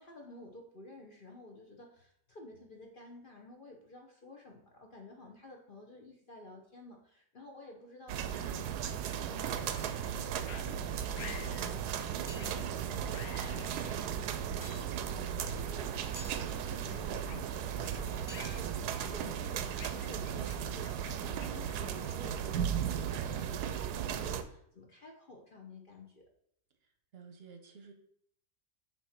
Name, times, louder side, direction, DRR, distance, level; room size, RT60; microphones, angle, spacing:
voice 1, 0.0-8.6 9.2-26.2, left 2 dB, 50° left, 0 dB, 0.6 m, -52 dB
sound 1, 8.1-24.4, right 8 dB, 75° right, 1.1 m, -36 dB
sound 2, 8.8-9.0 9.7-9.9 10.5-10.7 11.2-11.8 12.4-12.6 13.1-14.0 14.7-14.8 15.6-15.8 16.2-16.3 16.9-17.9 18.3-18.7 19.0-19.3 19.8-22.4, left 8 dB, 70° left, 1.0 m, -51 dB
sound 3, 11.9-20.5, equal, 15° left, 1.0 m, -57 dB
voice 2, 27.1-27.9, right 5 dB, 45° right, 5 dB, 0.9 m, -52 dB
7.1 x 3.0 x 5.7 m, 0.69 s
omnidirectional pair, 1.8 m